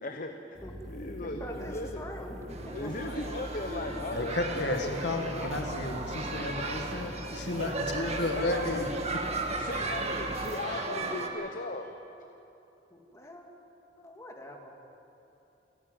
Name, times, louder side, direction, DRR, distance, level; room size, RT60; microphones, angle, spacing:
voice 1, 0.0-0.6 0.9-2.0 2.7-5.0 5.4-5.5 8.4-8.9 9.6-11.9, left 2 dB, 50° left, 5 dB, 1.0 m, -38 dB
sound 1, 0.5-10.6, equal, ahead, 3.1 m, -43 dB
voice 2, 1.2-2.9 12.9-13.5 14.0-14.7, left 1 dB, 15° left, 1 dB, 2.1 m, -44 dB
sound 2, 2.5-11.3, right 3 dB, 40° right, 1.6 m, -36 dB
voice 3, 3.0-3.4 4.1-9.0 10.6-10.9, left 2 dB, 70° left, 4 dB, 1.9 m, -33 dB
29.0 x 9.8 x 9.3 m, 3.0 s
head